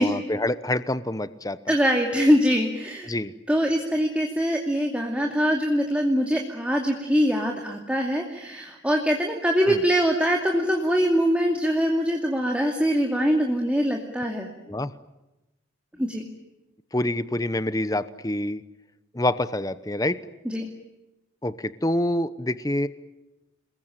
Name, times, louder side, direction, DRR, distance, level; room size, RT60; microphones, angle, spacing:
voice 1, 0.0-1.7 3.0-3.3 9.7-9.8 14.7-14.9 16.9-18.6 19.1-20.2 21.4-22.9, left 1 dB, 20° left, 14 dB, 0.9 m, -26 dB
voice 2, 1.7-3.1 3.5-14.5 16.0-16.2 20.5-20.7, equal, 5° right, 1 dB, 2.5 m, -23 dB
29.5 x 21.0 x 9.1 m, 0.99 s
head